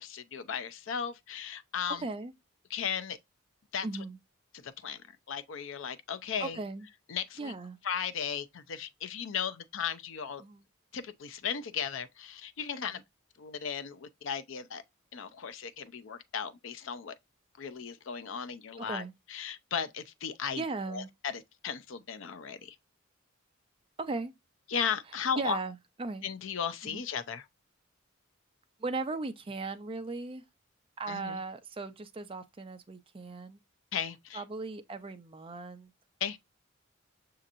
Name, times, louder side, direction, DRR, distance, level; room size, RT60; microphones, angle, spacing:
voice 1, 0.0-2.0 2.7-3.2 3.7-3.9 4.5-5.0 5.3-6.6 7.1-7.5 7.8-10.4 10.9-13.0 13.4-14.8 15.1-17.1 17.6-20.6 20.9-22.8 24.7-25.6 26.2-27.5 31.1-31.4 33.9-34.4 36.2-36.4, left 7 dB, 65° left, 0.5 m, -36 dB
voice 2, 2.0-2.3 3.8-4.2 6.4-6.9 7.4-7.8 10.4-10.6 12.8-13.0 18.8-19.1 20.6-21.1 24.0-24.3 25.4-26.2 26.8-27.0 28.8-30.4 31.0-33.6 34.3-35.9, right 3 dB, 25° right, 0.5 m, -37 dB
6.3 x 2.8 x 2.5 m
head